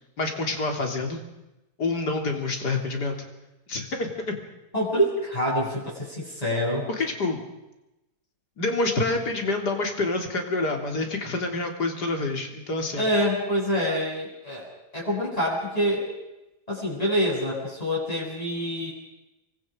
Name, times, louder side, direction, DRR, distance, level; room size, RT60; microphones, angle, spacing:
voice 1, 0.2-1.2 1.8-3.2 3.7-4.4 6.9-7.4 8.6-13.0, left 2 dB, 75° left, 3 dB, 3.8 m, -27 dB
voice 2, 4.7-6.9 13.0-14.7 14.9-16.1 16.7-18.9, equal, 20° left, -7 dB, 7.6 m, -26 dB
28.5 x 24.0 x 5.2 m, 0.96 s
omnidirectional pair, 1.8 m